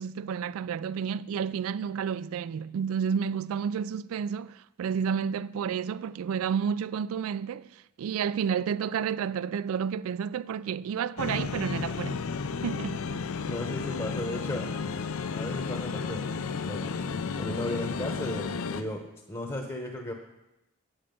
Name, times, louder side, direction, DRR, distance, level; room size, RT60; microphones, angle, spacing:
voice 1, 0.0-12.3 12.6-13.0, right 7 dB, 80° right, 0.3 m, -31 dB
sound 1, 11.2-18.8, left 5 dB, 80° left, 0.5 m, -33 dB
voice 2, 13.5-14.7 15.3-16.3 16.7-19.0 19.3-20.1, left 1 dB, 20° left, 0.9 m, -35 dB
8.8 x 8.7 x 5.2 m
head